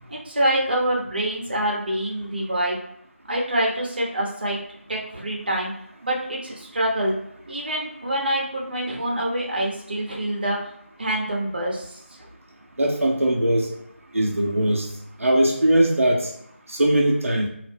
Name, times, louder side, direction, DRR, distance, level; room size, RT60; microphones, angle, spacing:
voice 1, 0.1-2.8 3.2-4.6 4.9-5.7 6.0-7.1 7.5-10.7 11.0-12.3, right 1 dB, 45° right, -2 dB, 0.8 m, -26 dB
voice 2, 12.8-13.7 14.1-14.9 15.2-16.3 16.7-17.5, right 1 dB, 90° right, 0 dB, 0.6 m, -20 dB
2.6 x 2.1 x 3.4 m, 0.74 s
figure-of-eight pair, 170°, 7 cm